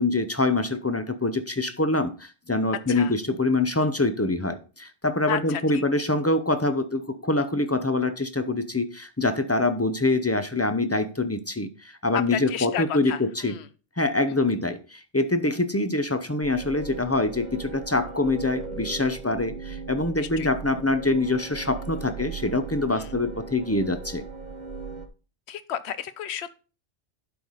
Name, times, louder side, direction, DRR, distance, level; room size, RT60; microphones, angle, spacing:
voice 1, 0.0-13.6 14.0-24.2, left 2 dB, 25° left, 10 dB, 0.3 m, -25 dB
voice 2, 5.3-5.8 12.3-13.7 14.3-14.4 20.2-20.5 22.9-23.1 25.5-26.6, left 9 dB, 65° left, 14 dB, 1.0 m, -33 dB
sound 1, 16.4-25.1, right 5 dB, 40° right, 0.9 m, -38 dB
11.5 x 4.8 x 4.0 m, 0.35 s
omnidirectional pair, 1.3 m